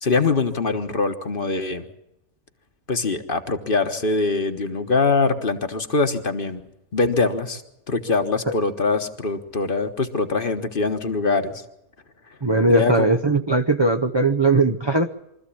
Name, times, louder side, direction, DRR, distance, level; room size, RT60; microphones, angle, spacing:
voice 1, 0.0-1.9 2.9-6.6 6.9-7.6 7.9-11.6 12.7-13.1, left 3 dB, 40° left, 8 dB, 1.4 m, -23 dB
voice 2, 12.4-15.1, right 2 dB, 30° right, 5 dB, 0.5 m, -19 dB
24.0 x 14.0 x 8.5 m, 0.89 s
omnidirectional pair, 1.5 m